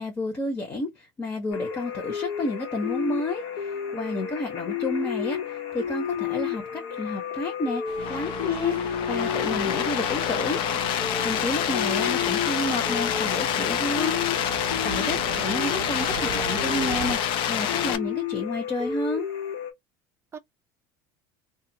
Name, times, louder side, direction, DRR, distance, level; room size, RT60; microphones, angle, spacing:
voice 1, 0.0-10.6 11.2-14.2 14.8-19.3, left 2 dB, 25° left, 0.9 m, -30 dB
sound 1, 1.5-19.7, left 8 dB, 70° left, 1.2 m, -32 dB
sound 2, 7.8-17.2, right 11 dB, 75° right, 0.4 m, -39 dB
sound 3, 8.0-18.0, left 9 dB, 55° left, 0.5 m, -27 dB
voice 2, 9.5-9.9 15.2-15.8 20.3-20.4, right 6 dB, 25° right, 0.6 m, -42 dB
2.5 x 2.4 x 2.7 m
supercardioid pair, 120°, 10 cm